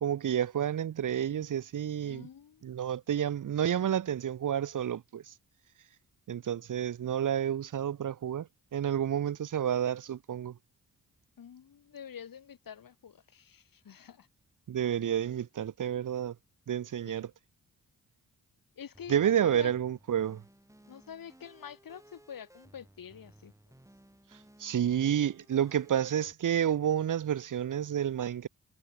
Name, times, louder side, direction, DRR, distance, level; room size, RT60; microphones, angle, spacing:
voice 1, 0.0-2.3 2.6-5.2 6.3-10.5 14.7-16.3 16.7-17.3 19.1-20.4 24.6-28.5, right 9 dB, 65° right, 1.0 m, -30 dB
voice 2, 2.0-2.6 11.4-14.3 17.0-17.3 18.8-19.7 20.9-23.5, left 8 dB, 75° left, 7.9 m, -47 dB
sound 1, 18.9-26.3, right 1 dB, 10° right, 7.3 m, -59 dB
cardioid pair, 80°, 34 cm